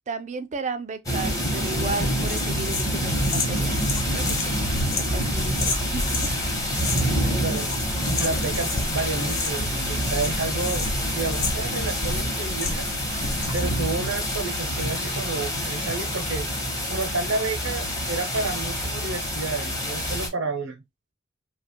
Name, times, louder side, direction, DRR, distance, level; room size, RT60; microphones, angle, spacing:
voice 1, 0.0-3.8 4.1-6.8, right 4 dB, 35° right, 0.4 m, -34 dB
sound 1, 1.1-20.3, equal, 15° left, 1.0 m, -27 dB
sound 2, 2.2-6.3 6.7-7.2 7.5-8.9 9.2-9.7 10.0-12.9 13.2-13.8, left 5 dB, 75° left, 0.8 m, -33 dB
sound 3, 4.5-13.6, left 1 dB, 40° left, 0.5 m, -37 dB
voice 2, 7.2-7.7 8.2-12.9 13.5-16.5 16.9-20.8, right 3 dB, 80° right, 0.7 m, -30 dB
2.9 x 2.5 x 2.9 m
head